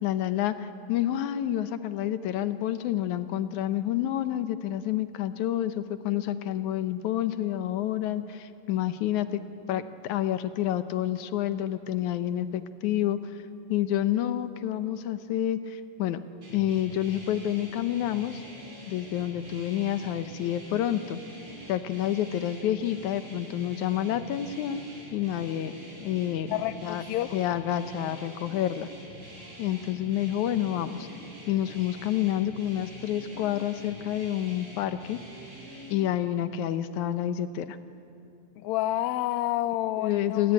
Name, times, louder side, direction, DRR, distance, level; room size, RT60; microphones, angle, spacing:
voice 1, 0.0-9.4 9.7-13.4 13.7-16.2 16.5-18.4 18.9-21.2 21.7-24.8 25.1-25.7 26.0-26.5 26.8-27.0 27.3-28.9 29.6-31.1 31.5-35.2 35.9-37.8 40.0-40.5, left 11 dB, 70° left, 11 dB, 2.1 m, -28 dB
sound 1, 16.4-36.0, right 1 dB, 40° right, 7.4 m, -46 dB
voice 2, 26.5-27.4 38.6-40.5, left 14 dB, 90° left, 13 dB, 1.6 m, -29 dB
29.0 x 20.5 x 9.7 m, 2.7 s
omnidirectional pair, 4.1 m